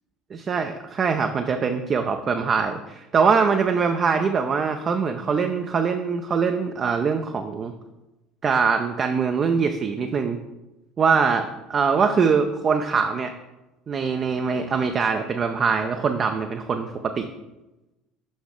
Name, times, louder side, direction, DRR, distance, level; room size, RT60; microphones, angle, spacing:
voice 1, 0.3-7.7 8.4-10.4 11.0-13.3 13.9-16.9 17.2-17.3, right 5 dB, 35° right, 6 dB, 0.4 m, -23 dB
6.3 x 5.8 x 3.7 m, 1.0 s
figure-of-eight pair, 65°, 0 cm